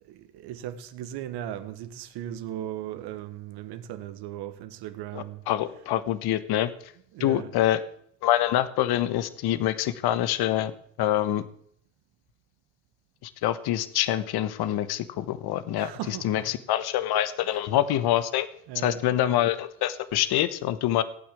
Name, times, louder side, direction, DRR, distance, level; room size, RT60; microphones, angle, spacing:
voice 1, 0.0-5.4 7.1-7.5 15.8-16.5 17.4-17.6 18.7-19.0, right 11 dB, 70° right, 1.7 m, -37 dB
voice 2, 5.1-6.7 7.2-7.8 8.2-10.7 11.0-11.4 13.2-18.5 18.8-21.0, left 12 dB, 65° left, 1.3 m, -25 dB
16.5 x 8.8 x 8.4 m
hypercardioid pair, 65°, 42 cm